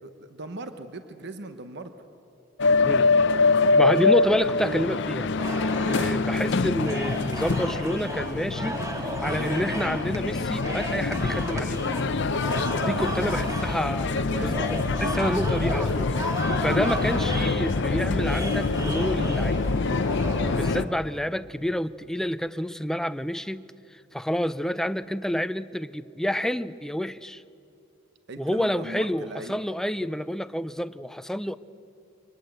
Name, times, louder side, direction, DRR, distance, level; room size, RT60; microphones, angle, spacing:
voice 1, 0.0-2.1 12.7-13.7 14.1-14.6 15.2-15.3 16.5-16.8 17.2-17.3 28.3-29.6, right 2 dB, 60° right, 9 dB, 1.1 m, -40 dB
sound 1, 2.6-20.8, left 3 dB, 60° left, 0.7 m, -25 dB
voice 2, 3.8-5.3 5.6-11.8 12.8-14.1 14.4-14.5 15.0-19.6 20.5-23.7 23.9-27.4 28.4-31.6, equal, ahead, 13 dB, 0.4 m, -29 dB
sound 2, 5.4-20.7, right 1 dB, 15° right, 2.0 m, -34 dB
23.5 x 19.5 x 7.9 m, 2.7 s
head